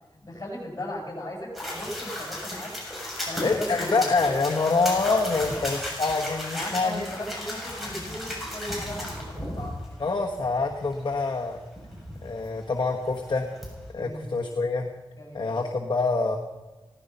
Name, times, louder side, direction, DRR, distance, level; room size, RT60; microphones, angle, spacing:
voice 1, 0.2-2.7 3.2-4.1 5.3-5.6 6.5-9.8 13.9-14.3 15.1-15.5, left 1 dB, 35° left, -1 dB, 7.6 m, -37 dB
sound 1, 1.5-13.9, left 1 dB, ahead, 7.2 m, -35 dB
voice 2, 3.4-7.1 10.0-11.6 12.2-13.5 13.9-14.9 15.3-16.4, left 3 dB, 60° left, 0 dB, 1.3 m, -26 dB
17.0 x 14.5 x 5.6 m, 1.2 s
wide cardioid pair, 85°, 9 cm